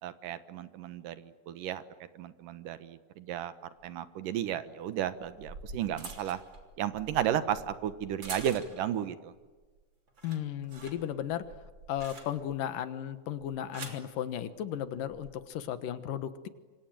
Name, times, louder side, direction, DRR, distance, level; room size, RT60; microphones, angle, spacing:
voice 1, 0.0-1.8 2.1-3.5 3.8-6.4 6.8-9.3, right 10 dB, 85° right, 12 dB, 2.8 m, -33 dB
sound 1, 3.8-3.9 5.0-9.0 9.4-9.8 10.1-12.7 13.4-14.1 15.0-15.3, right 3 dB, 35° right, 3.7 m, -46 dB
voice 2, 10.2-11.4 11.9-16.5, left 10 dB, 90° left, 11 dB, 3.0 m, -35 dB
27.0 x 24.0 x 9.3 m, 1.3 s
omnidirectional pair, 3.7 m